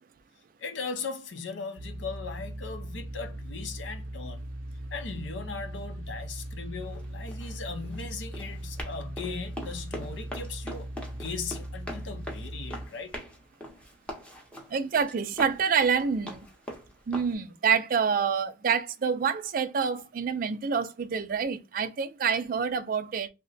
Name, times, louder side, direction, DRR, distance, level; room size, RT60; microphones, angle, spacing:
voice 1, 0.6-4.4 4.9-13.2, left 4 dB, 70° left, 0.6 m, -38 dB
sound 1, 1.8-12.9, right 1 dB, 90° right, 0.6 m, -39 dB
Run, 6.8-17.3, equal, 5° left, 0.7 m, -43 dB
voice 2, 14.7-16.5 17.1-23.3, right 6 dB, 45° right, 0.3 m, -27 dB
2.9 x 2.1 x 3.8 m
head